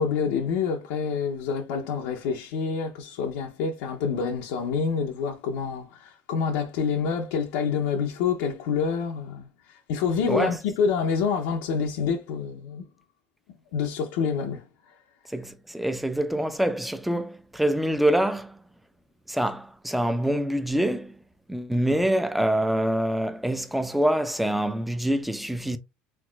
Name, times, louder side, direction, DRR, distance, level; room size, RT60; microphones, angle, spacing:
voice 1, 0.0-12.8 13.7-14.6, left 6 dB, 85° left, 0.7 m, -27 dB
voice 2, 15.3-18.6 19.3-21.1 21.5-25.8, right 1 dB, 5° right, 0.5 m, -25 dB
4.6 x 3.6 x 2.3 m
supercardioid pair, 125°, 4 cm